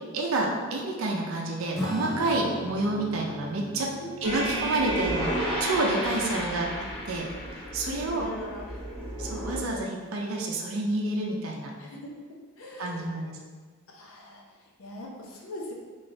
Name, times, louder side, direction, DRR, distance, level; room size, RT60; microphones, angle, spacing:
voice 1, 0.1-3.9 4.2-8.3 9.2-11.7 12.8-13.4, right 2 dB, 75° right, -1 dB, 0.5 m, -29 dB
Acoustic guitar / Strum, 1.7-7.7, left 1 dB, ahead, 0.6 m, -40 dB
voice 2, 3.8-4.2 7.8-8.8 11.8-12.1 12.6-13.1 13.9-15.7, left 1 dB, 80° left, -1 dB, 0.6 m, -41 dB
sound 1, 4.2-9.6, right 1 dB, 20° left, 1.3 m, -32 dB
3.7 x 3.1 x 2.6 m, 1.4 s
head